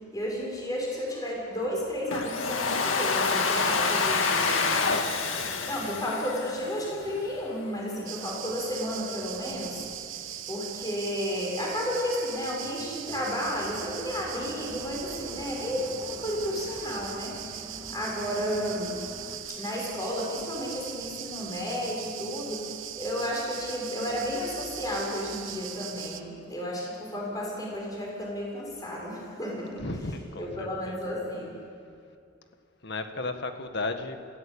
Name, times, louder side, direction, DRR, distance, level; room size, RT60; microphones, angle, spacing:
voice 1, 0.0-19.0 19.5-29.9 30.4-31.5, equal, 20° left, -3 dB, 6.9 m, -33 dB
Domestic sounds home sounds, 2.1-7.1, left 4 dB, 85° left, 2.1 m, -27 dB
voice 2, 5.6-6.0 19.3-19.5 29.8-31.0 32.8-34.2, left 2 dB, 60° left, 7 dB, 1.7 m, -35 dB
sound 1, 8.1-26.2, right 11 dB, 80° right, 1.3 m, -40 dB
sound 2, 13.1-19.4, equal, 20° right, 1.8 m, -46 dB
28.5 x 16.5 x 8.8 m, 2.5 s
head